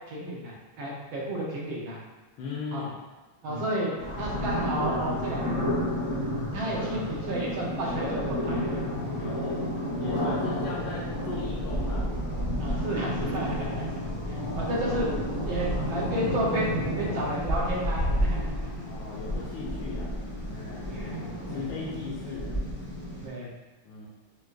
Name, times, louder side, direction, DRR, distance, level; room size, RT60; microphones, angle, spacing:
voice 1, 0.1-2.0 2.7-2.9 3.4-3.9 4.2-5.7 6.5-8.8 9.2-9.3 12.6-13.7 14.3-15.1 15.5-18.5 20.9-21.2 21.5-21.7 22.3-22.4 23.2-23.5, right 1 dB, 70° right, -4 dB, 1.7 m, -32 dB
voice 2, 2.4-2.9 3.5-3.7 9.1-9.6 10.0-12.1 13.9-14.2 18.8-20.1 20.4-20.9 21.5-22.6 23.8-24.1, left 4 dB, 75° left, -6 dB, 1.5 m, -38 dB
sound 1, 4.0-23.3, equal, 25° left, 0.5 m, -31 dB
Guitar, 7.8-9.0, left 3 dB, 50° right, 1.5 m, -49 dB
6.0 x 2.6 x 2.5 m, 1.3 s
omnidirectional pair, 2.2 m